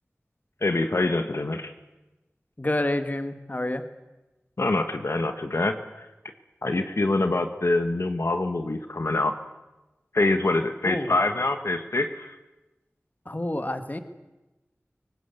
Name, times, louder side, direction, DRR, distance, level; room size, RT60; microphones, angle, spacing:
voice 1, 0.6-1.7 4.6-6.1 6.6-9.3 10.1-12.4, left 2 dB, 70° left, 7 dB, 1.3 m, -25 dB
voice 2, 2.6-3.8 10.8-11.1 13.3-14.0, left 1 dB, 35° left, 9 dB, 1.8 m, -28 dB
23.0 x 19.5 x 8.2 m, 1.1 s
wide cardioid pair, 50°, 5 cm